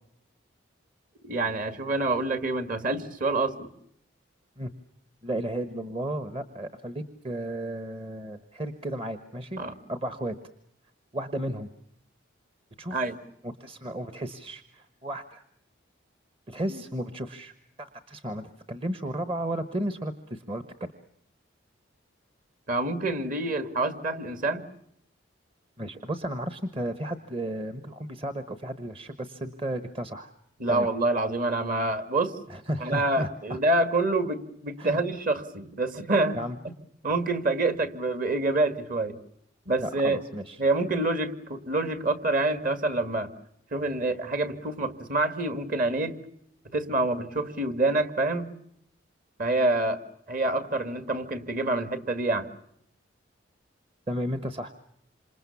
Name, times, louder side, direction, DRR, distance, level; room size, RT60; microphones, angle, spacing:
voice 1, 1.2-3.7 9.6-9.7 12.9-13.2 16.7-16.8 22.7-24.6 30.6-32.3 32.8-36.4 37.0-39.2 39.7-40.2 40.6-43.3 43.7-46.2 46.7-48.5 49.4-50.0 50.3-52.5, right 2 dB, 45° right, 10 dB, 2.1 m, -27 dB
voice 2, 5.2-9.6 9.9-10.3 11.1-11.7 12.8-13.1 13.4-15.4 16.5-17.5 17.8-20.9 25.8-30.3 30.7-30.9 32.5-33.6 34.8-35.1 36.3-36.6 39.8-40.6 54.1-54.7, right 1 dB, 30° right, 10 dB, 1.2 m, -33 dB
28.0 x 27.5 x 7.1 m, 0.72 s
head